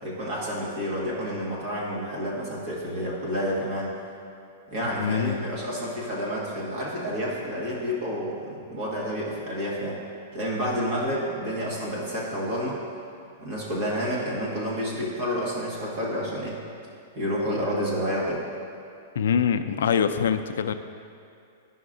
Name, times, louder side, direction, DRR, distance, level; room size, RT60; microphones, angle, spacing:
voice 1, 0.0-3.9 4.7-10.0 10.3-12.8 13.4-16.6 17.1-18.4, equal, 35° right, -5 dB, 1.5 m, -29 dB
voice 2, 5.0-5.5 19.2-20.7, left 7 dB, 85° left, 9 dB, 0.3 m, -24 dB
10.0 x 5.7 x 2.6 m, 2.5 s
supercardioid pair, 175°, 0 cm